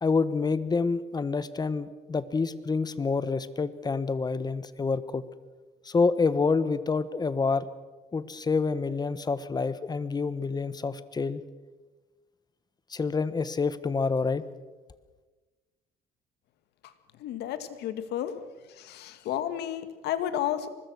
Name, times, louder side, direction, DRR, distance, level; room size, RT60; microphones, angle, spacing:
voice 1, 0.0-5.2 5.8-7.6 8.1-11.4 12.9-14.4, left 4 dB, 25° left, 14 dB, 1.2 m, -27 dB
voice 2, 17.2-18.3 18.8-20.7, left 11 dB, 80° left, 10 dB, 2.0 m, -32 dB
24.5 x 20.5 x 6.3 m, 1.2 s
cardioid pair, 110°, 17 cm